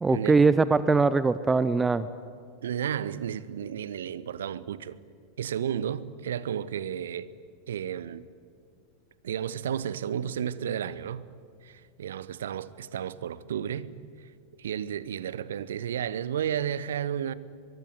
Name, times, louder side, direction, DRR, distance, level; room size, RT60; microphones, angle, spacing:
voice 1, 0.0-2.1, right 4 dB, 10° right, 0.7 m, -22 dB
voice 2, 2.6-5.0 5.4-7.3 7.7-8.3 9.2-11.2 11.6-13.9 14.6-17.3, right 9 dB, 60° right, 1.0 m, -32 dB
23.5 x 22.5 x 9.5 m
figure-of-eight pair, 90°, 0 cm